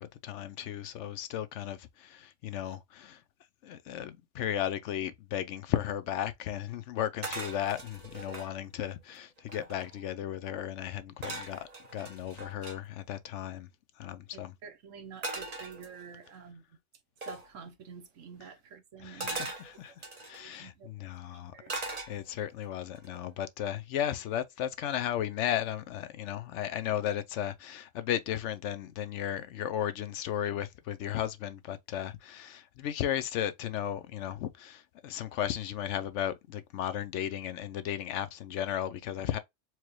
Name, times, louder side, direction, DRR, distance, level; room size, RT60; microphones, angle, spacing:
voice 1, 0.0-3.2 3.6-13.7 14.0-14.5 19.0-21.5 22.1-39.4, left 10 dB, 70° left, 0.9 m, -35 dB
sound 1, 7.2-8.5 9.1-9.2 9.4-10.0 11.2-12.8 15.2-16.3 17.2-17.5 19.2-20.4 21.7-22.5 23.0-23.3, right 2 dB, 35° right, 0.9 m, -40 dB
voice 2, 14.6-16.6 17.3-19.4 20.4-20.9 21.3-21.7, right 6 dB, 80° right, 1.3 m, -48 dB
4.6 x 2.2 x 3.1 m
omnidirectional pair, 1.3 m